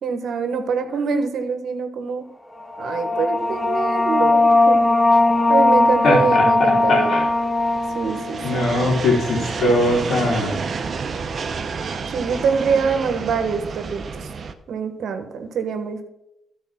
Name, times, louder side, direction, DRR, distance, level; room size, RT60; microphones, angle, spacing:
voice 1, 0.0-2.2 2.8-4.8 5.5-7.3 7.9-8.7 12.1-14.3 14.7-16.0, right 5 dB, 70° right, 7 dB, 1.3 m, -24 dB
sound 1, 2.6-9.9, left 2 dB, 10° left, 1.1 m, -19 dB
sound 2, 3.6-14.5, right 5 dB, 50° right, 0.8 m, -31 dB
voice 2, 6.0-7.2 8.4-10.6, left 2 dB, 70° left, -7 dB, 3.0 m, -20 dB
13.0 x 4.6 x 5.9 m, 0.86 s
cardioid pair, 70°, 0 cm